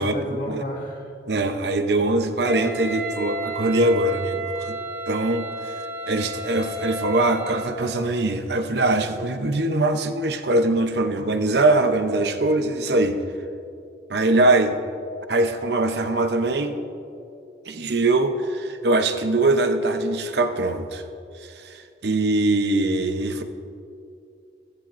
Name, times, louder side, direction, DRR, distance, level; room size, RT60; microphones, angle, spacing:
voice 1, 0.0-1.1, equal, 45° left, -2 dB, 2.0 m, -31 dB
voice 2, 1.3-4.8 5.1-5.7 6.1-13.2 14.1-14.8 15.3-16.8 17.6-21.0 21.4-23.4, right 2 dB, 70° right, 7 dB, 0.8 m, -22 dB
Wind instrument woodwind instrument, 2.4-7.8, right 2 dB, 10° right, 1.4 m, -33 dB
15.5 x 14.5 x 2.6 m, 2.6 s
head